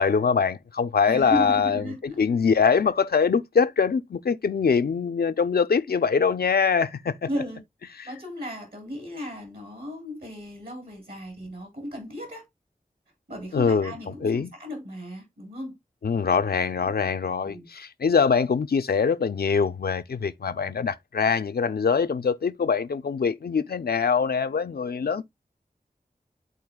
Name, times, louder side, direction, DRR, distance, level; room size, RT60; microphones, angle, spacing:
voice 1, 0.0-1.8 2.2-7.1 13.5-13.9 14.2-14.5 16.0-25.2, left 6 dB, 90° left, 0.6 m, -23 dB
voice 2, 1.1-2.2 7.3-7.6 7.8-12.4 13.3-15.8 17.4-17.7, equal, 70° right, 4.0 m, -35 dB
12.5 x 4.3 x 2.3 m
wide cardioid pair, 40°, 16 cm